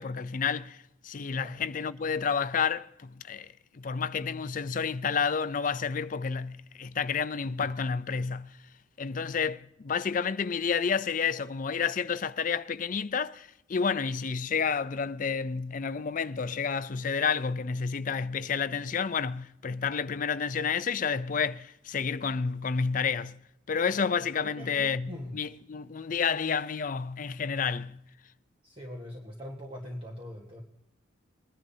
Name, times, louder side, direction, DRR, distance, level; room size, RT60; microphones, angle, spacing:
voice 1, 0.0-8.5 9.0-23.4 23.7-28.0, left 6 dB, 40° left, 0.4 m, -30 dB
voice 2, 1.3-1.6 24.4-25.3 28.6-30.6, left 1 dB, 25° right, 1.4 m, -42 dB
22.5 x 10.5 x 2.8 m
head